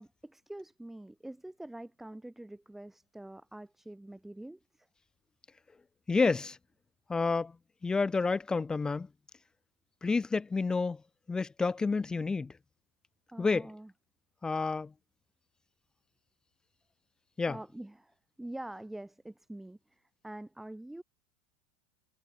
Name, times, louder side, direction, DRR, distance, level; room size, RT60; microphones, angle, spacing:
voice 1, 0.0-4.6 13.3-13.9 17.5-18.1 18.4-19.8 20.2-21.0, right 1 dB, 5° right, 3.1 m, -45 dB
voice 2, 6.1-6.6 7.1-7.5 7.8-9.1 10.0-11.0 11.3-12.5 13.4-13.7 14.4-14.9 17.4-17.6, left 4 dB, 15° left, 0.5 m, -29 dB
supercardioid pair, 115°, 5 cm